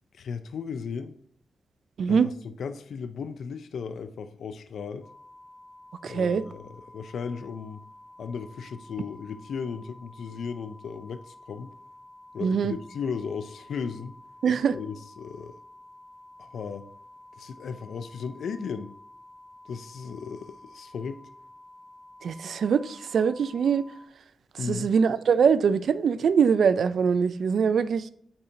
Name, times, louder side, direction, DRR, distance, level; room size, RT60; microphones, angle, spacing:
voice 1, 0.1-1.2 2.1-5.1 6.1-7.8 8.2-11.7 12.3-14.1 14.7-15.6 16.4-16.9 17.4-18.9 19.6-21.3 24.6-24.9, left 6 dB, 80° left, 0.5 m, -36 dB
sound 1, 5.0-24.1, left 1 dB, 40° left, 1.6 m, -51 dB
voice 2, 6.0-6.4 12.4-12.7 14.4-14.7 22.2-23.8 24.7-28.1, right 6 dB, 70° right, 0.4 m, -23 dB
8.6 x 4.3 x 2.6 m
cardioid pair, 80°, 0 cm